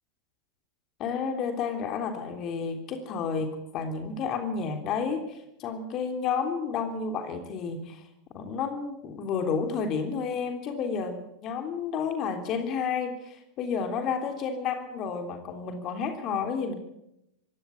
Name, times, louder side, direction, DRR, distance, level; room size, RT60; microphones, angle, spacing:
voice 1, 1.0-8.0 8.3-16.7, left 6 dB, 45° left, 5 dB, 3.3 m, -31 dB
21.0 x 17.5 x 8.3 m, 0.84 s
hypercardioid pair, 95°, 0 cm